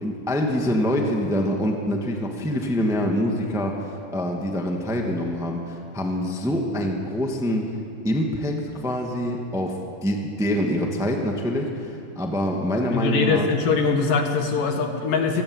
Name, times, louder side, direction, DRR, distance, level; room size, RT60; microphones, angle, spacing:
voice 1, 0.0-7.7 8.0-13.5, equal, ahead, 1 dB, 1.4 m, -25 dB
voice 2, 12.9-15.4, left 4 dB, 65° left, 4 dB, 3.4 m, -22 dB
26.5 x 18.5 x 8.3 m, 2.6 s
omnidirectional pair, 4.2 m